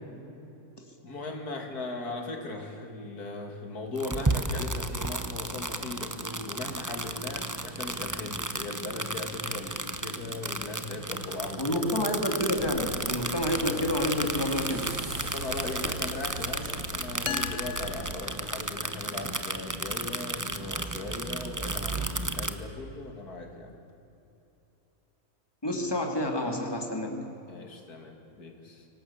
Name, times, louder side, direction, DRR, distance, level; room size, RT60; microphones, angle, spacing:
voice 1, 1.0-11.7 15.2-23.8 27.5-28.9, left 2 dB, 85° left, 3 dB, 3.1 m, -38 dB
sound 1, 4.0-22.5, right 2 dB, 15° right, 1.0 m, -34 dB
voice 2, 11.6-14.9 25.6-27.3, left 1 dB, 15° left, 2 dB, 2.7 m, -29 dB
sound 2, 12.6-18.1, equal, 60° right, 3.5 m, -40 dB
sound 3, 17.3-19.0, left 10 dB, 65° left, 1.0 m, -39 dB
25.0 x 18.0 x 8.4 m, 2.9 s
omnidirectional pair, 1.6 m